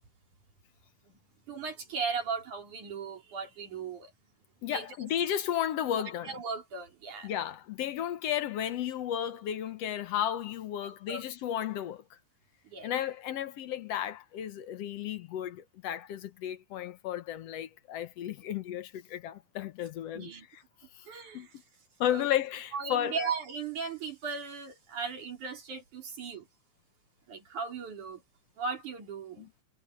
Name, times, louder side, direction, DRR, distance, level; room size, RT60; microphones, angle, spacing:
voice 1, 1.5-4.1 4.7-5.1 6.3-7.3 10.8-11.2 12.7-12.9 20.1-20.5 21.1-21.5 22.1-22.2 22.7-26.5 27.3-28.2 28.6-29.5, right 5 dB, 90° right, 5.8 m, -37 dB
voice 2, 4.6-6.4 7.2-12.2 12.8-20.6 20.9-21.1 21.3-21.5 22.0-23.2 29.4-29.5, left 10 dB, 65° left, 1.9 m, -33 dB
omnidirectional pair, 3.4 m